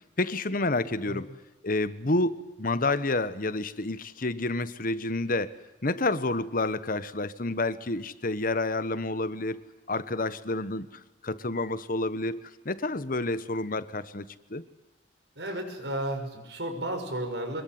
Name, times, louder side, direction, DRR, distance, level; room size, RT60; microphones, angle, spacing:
voice 1, 0.2-1.3 1.6-5.5 5.8-9.6 9.9-14.6, left 2 dB, 50° left, 14 dB, 1.4 m, -29 dB
voice 2, 15.4-17.6, right 1 dB, 75° right, 5 dB, 6.0 m, -33 dB
25.0 x 22.0 x 9.5 m, 1.0 s
head